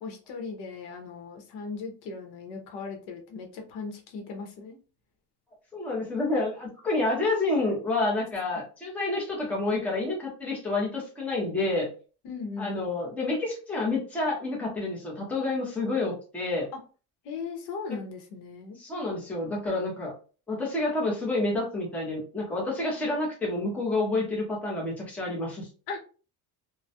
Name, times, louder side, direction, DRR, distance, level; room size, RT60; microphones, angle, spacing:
voice 1, 0.0-4.8 8.5-8.6 12.2-12.8 17.2-18.8 25.9-26.0, left 4 dB, 75° left, 3 dB, 0.8 m, -38 dB
voice 2, 5.7-11.9 12.6-16.7 18.8-20.1 20.5-25.7, left 2 dB, 5° left, -3 dB, 0.5 m, -29 dB
2.2 x 2.0 x 2.7 m, 0.37 s
cardioid pair, 165°, 40 cm